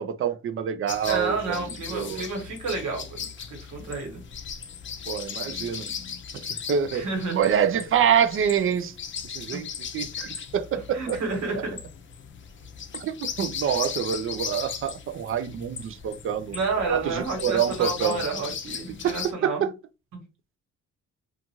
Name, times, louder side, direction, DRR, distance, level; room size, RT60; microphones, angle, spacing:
voice 1, 0.0-1.7 1.9-2.3 5.1-5.9 6.3-9.0 9.2-9.7 9.9-11.2 11.5-11.6 12.9-16.6 16.9-18.2 19.0-19.7, right 8 dB, 45° right, 0.4 m, -26 dB
sound 1, 0.9-19.3, left 7 dB, 40° left, 0.5 m, -37 dB
voice 2, 1.0-4.2 6.9-7.5 9.5-9.6 10.9-11.8 13.6-13.8 16.5-19.7, right 4 dB, 75° right, 1.4 m, -30 dB
2.6 x 2.4 x 2.9 m
cardioid pair, 90°, 30 cm